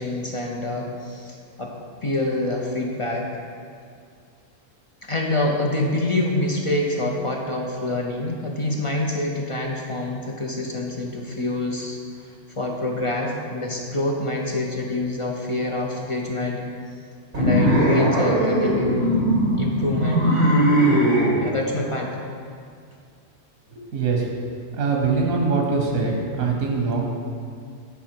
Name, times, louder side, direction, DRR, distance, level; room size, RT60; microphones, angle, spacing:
voice 1, 0.0-1.7 2.0-3.3 5.0-16.6 17.4-19.1 19.6-20.3 21.4-22.2, left 2 dB, 35° left, -1 dB, 0.5 m, -26 dB
sound 1, 17.3-21.3, right 1 dB, 60° right, 2.3 m, -19 dB
voice 2, 23.7-24.3 24.7-27.1, right 4 dB, 90° right, 0 dB, 1.3 m, -23 dB
9.4 x 4.6 x 4.4 m, 2.2 s
omnidirectional pair, 1.4 m